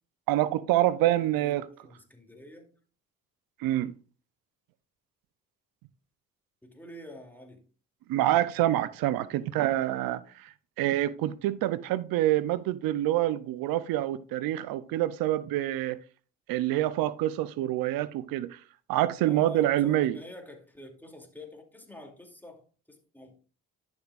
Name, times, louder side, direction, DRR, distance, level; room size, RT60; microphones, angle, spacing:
voice 1, 0.3-1.6 3.6-3.9 8.1-16.0 16.5-18.6 18.9-20.2, right 14 dB, 90° right, 0.5 m, -26 dB
voice 2, 1.2-2.7 6.6-7.6 19.2-23.4, left 1 dB, 5° left, 2.5 m, -47 dB
11.0 x 7.0 x 2.4 m
supercardioid pair, 60°, 34 cm